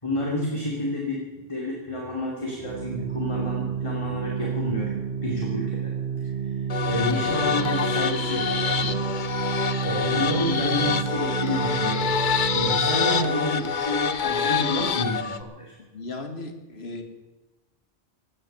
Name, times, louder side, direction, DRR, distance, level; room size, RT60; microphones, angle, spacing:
voice 1, 0.0-4.9 5.2-5.9 6.4-9.1 9.6-12.1 12.5-15.7, left 1 dB, 30° left, -2 dB, 2.8 m, -29 dB
Organ, 2.5-13.2, right 8 dB, 75° right, 1.1 m, -30 dB
sound 1, 6.7-15.4, left 6 dB, 50° left, 0.9 m, -26 dB
voice 2, 15.8-17.0, left 2 dB, 80° left, 7 dB, 2.0 m, -36 dB
17.5 x 11.0 x 6.9 m, 1.1 s
omnidirectional pair, 1.0 m